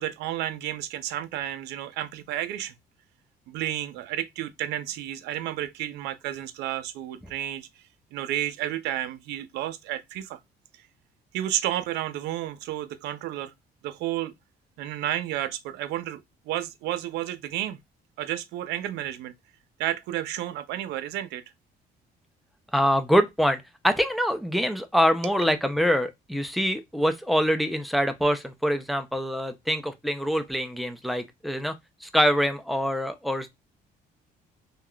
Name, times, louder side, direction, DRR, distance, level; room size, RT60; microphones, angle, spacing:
voice 1, 0.0-2.7 3.5-7.7 8.1-10.4 11.3-13.5 13.8-14.3 14.8-17.8 18.2-19.3 19.8-21.4, right 12 dB, 85° right, 0.5 m, -31 dB
voice 2, 22.7-31.7 32.0-33.6, equal, ahead, 0.4 m, -25 dB
3.5 x 2.4 x 2.2 m
cardioid pair, 110°, 17 cm